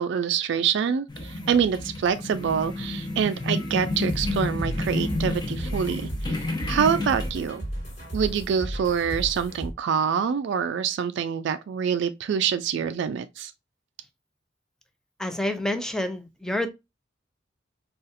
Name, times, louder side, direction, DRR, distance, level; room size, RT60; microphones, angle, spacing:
voice 1, 0.0-7.6 8.1-13.5, right 7 dB, 65° right, 0.3 m, -26 dB
sound 1, 1.1-7.3, left 2 dB, 25° left, 0.8 m, -30 dB
sound 2, 3.9-9.7, right 1 dB, 40° left, 1.5 m, -34 dB
voice 2, 15.2-16.7, left 1 dB, 5° left, 0.4 m, -28 dB
4.0 x 2.4 x 2.4 m
head